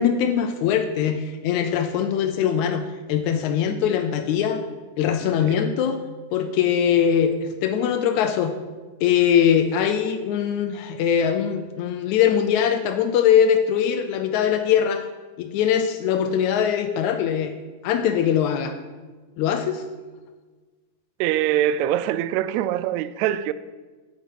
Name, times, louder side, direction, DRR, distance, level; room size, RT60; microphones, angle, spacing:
voice 1, 0.0-4.6 5.0-6.0 6.3-8.6 9.0-15.1 15.4-17.5 17.8-18.7 19.4-19.9, left 8 dB, 80° left, 1.8 m, -21 dB
voice 2, 21.2-23.5, right 11 dB, 85° right, 1.6 m, -23 dB
9.2 x 8.9 x 5.4 m
omnidirectional pair, 3.7 m